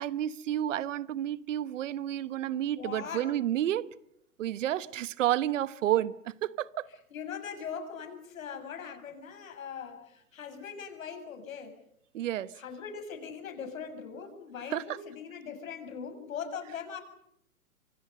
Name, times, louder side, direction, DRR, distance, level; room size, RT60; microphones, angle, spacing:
voice 1, 0.0-3.9 4.4-6.9 12.1-12.5 14.7-15.0, right 12 dB, 55° right, 1.1 m, -30 dB
voice 2, 2.7-3.3 7.1-11.8 12.5-17.0, left 7 dB, 65° left, 7.0 m, -41 dB
27.5 x 25.0 x 6.6 m
hypercardioid pair, 135°, 43 cm